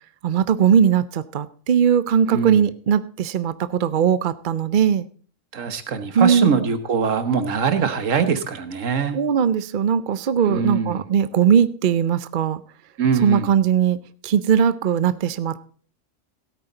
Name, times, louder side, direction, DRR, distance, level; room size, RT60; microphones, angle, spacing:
voice 1, 0.2-5.1 6.1-6.6 9.1-12.6 13.2-14.0 14.2-15.6, right 8 dB, 50° right, 15 dB, 0.6 m, -19 dB
voice 2, 2.3-2.6 5.5-9.2 10.5-11.0 13.0-13.5, right 6 dB, 75° right, 11 dB, 1.5 m, -22 dB
16.5 x 8.7 x 3.9 m, 0.43 s
omnidirectional pair, 1.4 m